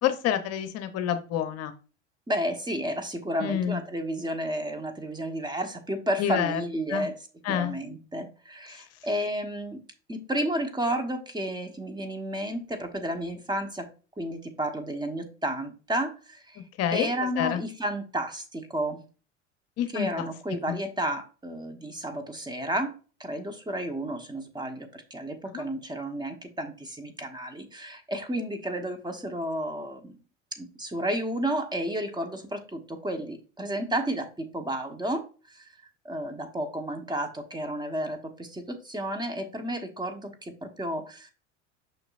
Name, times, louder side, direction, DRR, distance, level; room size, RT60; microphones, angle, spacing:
voice 1, 0.0-1.7 3.4-3.8 6.2-6.6 6.9-7.1 7.4-7.8 8.7-8.8 16.8-17.1 17.4-17.6 19.8-20.3 20.7-20.8 25.5-25.6, left 10 dB, 45° left, 9 dB, 0.9 m, -28 dB
voice 2, 2.3-7.1 7.5-9.8 10.1-13.9 14.2-16.6 16.9-19.0 19.9-22.9 23.2-30.2 30.5-35.7 36.0-41.3, right 1 dB, 10° right, 5 dB, 1.3 m, -32 dB
6.1 x 6.0 x 2.6 m, 0.35 s
hypercardioid pair, 75°, 36 cm